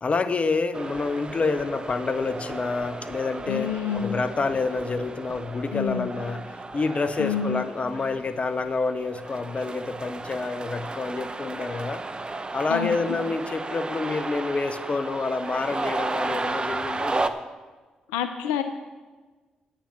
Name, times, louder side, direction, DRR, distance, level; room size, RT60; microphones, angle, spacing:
voice 1, 0.0-12.0 12.5-17.3, left 4 dB, 40° left, 10 dB, 0.9 m, -28 dB
sound 1, 0.7-17.3, right 3 dB, 30° right, 0.8 m, -34 dB
voice 2, 3.5-4.2 5.7-6.1 7.2-7.6 12.7-13.0 18.1-18.6, left 8 dB, 85° left, 8 dB, 0.5 m, -28 dB
10.0 x 8.7 x 5.9 m, 1.3 s
hypercardioid pair, 40°, 3 cm